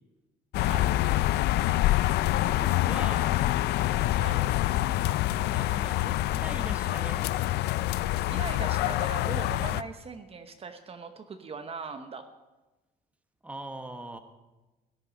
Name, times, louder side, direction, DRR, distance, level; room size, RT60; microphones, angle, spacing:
sound 1, 0.5-9.8, left 15 dB, 75° left, 0.4 m, -26 dB
voice 1, 2.4-3.4 5.4-7.3 13.4-14.2, right 2 dB, 10° right, 7 dB, 1.1 m, -41 dB
voice 2, 4.1-4.4 8.3-12.2, right 5 dB, 35° right, 7 dB, 0.9 m, -40 dB
17.0 x 9.6 x 5.2 m, 1.1 s
cardioid pair, 110°, 17 cm